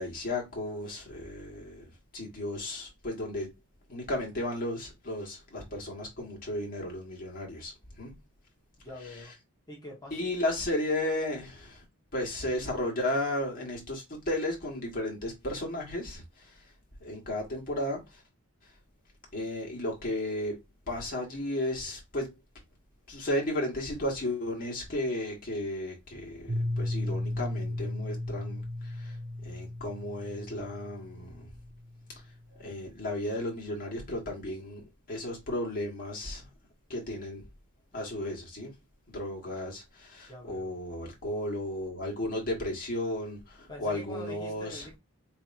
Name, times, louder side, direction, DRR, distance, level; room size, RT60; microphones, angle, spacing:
voice 1, 0.0-3.5 3.9-8.2 10.1-11.8 12.1-16.6 17.0-18.2 19.3-20.6 20.9-22.3 23.1-29.2 29.4-31.5 32.5-36.5 36.9-37.4 37.9-38.7 39.1-44.9, left 1 dB, 40° left, 1.7 m, -34 dB
voice 2, 8.8-9.3 9.7-10.3 40.3-40.7 43.7-45.0, left 1 dB, 20° left, 1.4 m, -45 dB
Piano, 26.5-32.1, left 1 dB, 55° right, 0.7 m, -35 dB
4.4 x 3.3 x 2.6 m
head